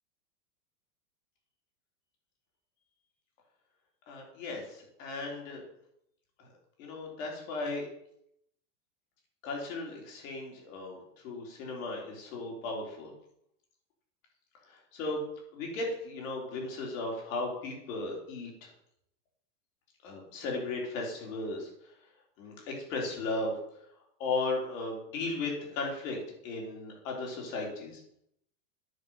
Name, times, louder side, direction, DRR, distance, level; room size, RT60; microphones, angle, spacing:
voice 1, 4.1-5.6 6.4-6.5 6.8-7.9 9.4-11.0 11.2-13.1 14.7-15.2 15.5-18.7 20.0-21.7 22.4-23.5 24.2-26.2 26.4-28.0, left 3 dB, 50° left, -1 dB, 4.0 m, -36 dB
9.4 x 7.2 x 5.8 m, 0.74 s
supercardioid pair, 170°, 49 cm